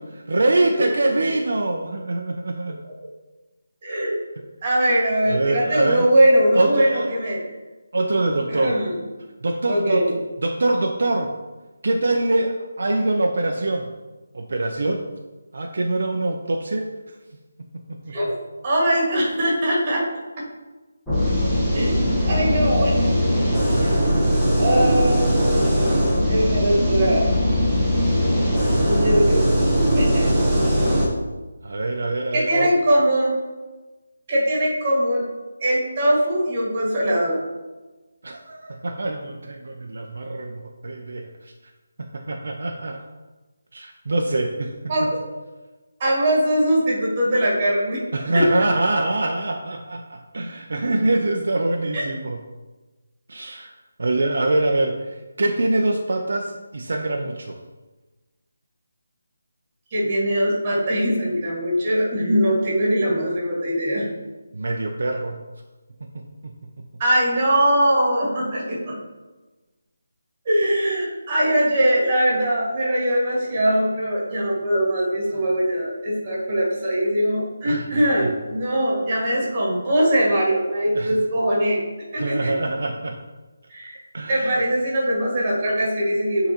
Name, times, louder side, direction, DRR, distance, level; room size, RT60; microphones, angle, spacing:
voice 1, 0.0-2.8 5.3-6.1 6.5-7.1 7.9-8.8 9.4-11.3 11.8-13.9 14.3-15.0 15.5-17.2 18.0-18.3 23.5-24.1 31.6-32.7 38.2-41.5 42.1-43.0 43.7-44.8 48.1-52.4 53.3-53.7 54.0-57.6 64.5-65.4 66.1-66.5 77.6-77.8 80.9-81.2 82.2-83.2 84.1-84.6, right 2 dB, 60° right, 2 dB, 0.6 m, -24 dB
voice 2, 3.8-4.2 4.6-7.4 8.5-9.0 9.7-10.1 18.1-18.3 18.6-20.0 21.7-23.1 23.8-24.0 24.6-25.7 26.3-27.3 28.8-29.5 29.9-30.3 30.7-30.8 32.3-33.3 34.3-35.2 35.6-37.4 44.9-45.2 46.0-48.0 48.3-48.5 51.9-52.0 59.9-64.1 67.0-69.0 70.5-81.8 82.1-82.5 83.7-84.0 84.3-86.5, right 1 dB, 25° right, -5 dB, 1.8 m, -21 dB
sound 1, 21.1-31.1, equal, 5° left, 1.0 m, -20 dB
9.2 x 3.9 x 2.9 m, 1.2 s
figure-of-eight pair, 175°, 0 cm